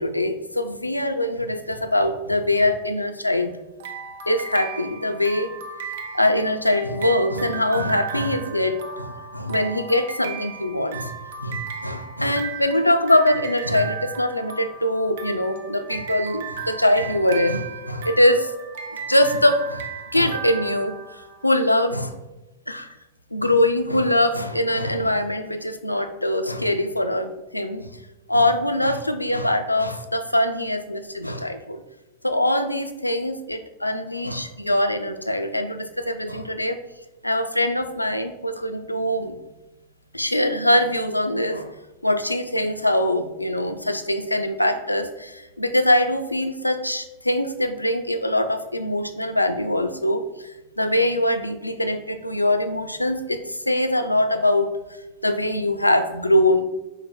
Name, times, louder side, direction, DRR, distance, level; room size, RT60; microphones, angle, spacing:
voice 1, 0.0-3.5 4.3-5.5 6.1-11.1 11.4-18.5 19.1-19.9 20.1-21.0 21.4-22.2 22.7-22.9 23.3-27.9 28.3-31.8 32.2-36.8 37.2-39.3 40.1-41.8 42.0-54.7 55.2-56.6, left 1 dB, 85° left, 7 dB, 0.3 m, -22 dB
sound 1, 3.8-21.5, right 6 dB, 60° right, 0.5 m, -35 dB
4.7 x 2.0 x 4.3 m, 0.98 s
figure-of-eight pair, 90°, 0 cm